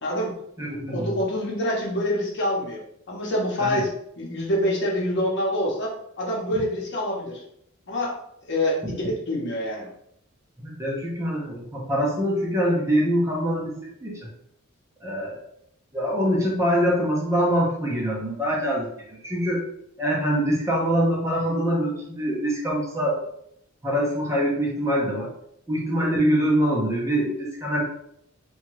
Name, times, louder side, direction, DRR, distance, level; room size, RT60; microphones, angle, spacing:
voice 1, 0.0-0.3 0.9-2.8 3.1-3.9 4.2-7.4 7.9-8.2 8.5-9.9, left 1 dB, 55° left, -3 dB, 0.8 m, -26 dB
voice 2, 0.6-1.2 3.6-3.8 6.5-6.6 8.8-8.9 10.6-14.3 15.0-15.4 15.9-19.6 20.0-23.2 23.8-25.3 25.7-27.8, equal, 15° right, -3 dB, 0.6 m, -24 dB
2.8 x 2.2 x 2.9 m, 0.73 s
head